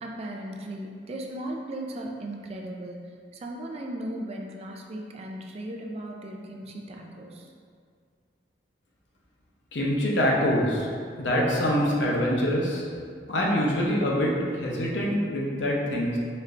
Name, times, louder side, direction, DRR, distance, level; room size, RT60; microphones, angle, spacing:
voice 1, 0.0-3.1 3.3-7.5, right 1 dB, 35° right, 1 dB, 0.3 m, -37 dB
voice 2, 9.7-10.9 11.2-12.8 13.3-16.2, equal, 80° left, -3 dB, 0.7 m, -25 dB
4.3 x 3.2 x 2.5 m, 2.1 s
head